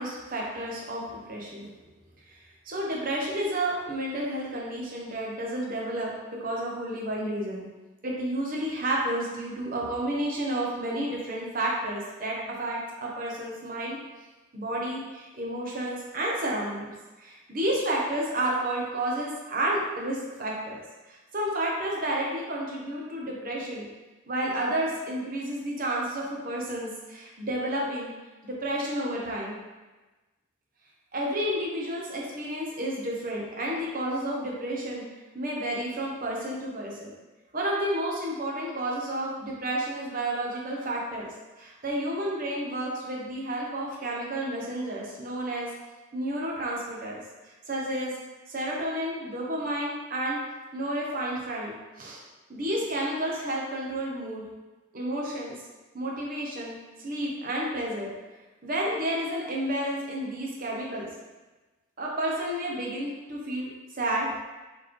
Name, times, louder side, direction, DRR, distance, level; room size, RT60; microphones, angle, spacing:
voice 1, 0.0-1.7 2.3-6.1 6.4-7.7 8.0-14.0 14.5-20.8 21.1-23.9 24.3-28.1 28.4-29.6 31.1-35.0 35.3-37.1 37.5-45.7 46.1-48.1 48.5-50.4 50.7-52.2 52.5-54.4 54.9-55.6 55.9-58.1 58.6-61.1 62.0-64.4, right 1 dB, 40° right, -3 dB, 0.8 m, -31 dB
4.1 x 3.3 x 3.0 m, 1.2 s
head